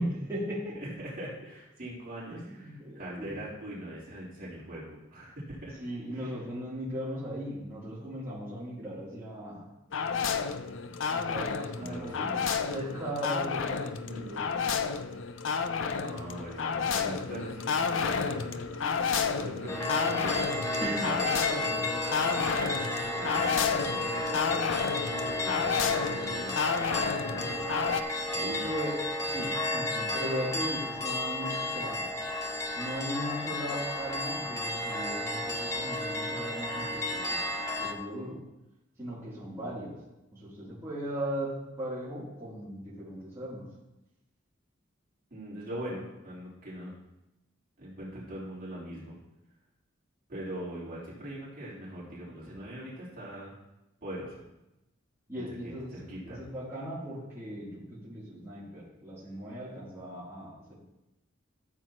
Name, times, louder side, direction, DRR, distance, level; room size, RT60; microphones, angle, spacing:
voice 1, 0.0-0.7 2.3-3.3 5.8-9.7 11.1-12.4 12.6-14.5 20.8-21.1 28.6-32.0 32.7-37.4 37.8-38.4 39.0-39.9 40.3-43.7 55.3-55.9 56.2-60.7, equal, 15° right, -10 dB, 3.0 m, -37 dB
voice 2, 0.7-5.7 6.1-6.4 11.8-12.5 14.0-14.4 15.8-18.6 19.4-20.4 20.9-24.6 25.4-27.6 28.3-28.7 45.3-46.9 47.8-49.2 50.3-53.5 54.0-54.4 55.3-56.4, right 1 dB, 45° right, -8 dB, 3.6 m, -42 dB
sound 1, 9.9-28.0, left 5 dB, 65° left, 0.5 m, -31 dB
Wind instrument woodwind instrument, 18.0-22.9 23.2-28.5, equal, 85° right, 2.2 m, -46 dB
sound 2, 19.7-37.9, left 1 dB, 15° left, 0.9 m, -33 dB
13.5 x 7.8 x 3.0 m, 0.96 s
head